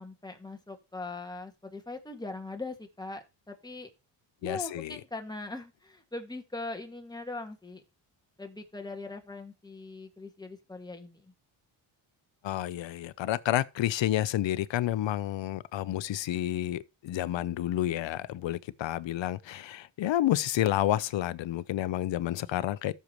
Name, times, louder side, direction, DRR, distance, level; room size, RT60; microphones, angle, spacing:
voice 1, 0.0-3.9 4.4-7.8 8.4-11.3, left 3 dB, 10° left, 1.9 m, -41 dB
voice 2, 4.4-5.0 12.4-22.9, left 13 dB, 60° left, 0.8 m, -30 dB
13.5 x 6.6 x 3.0 m
cardioid pair, 90°, 49 cm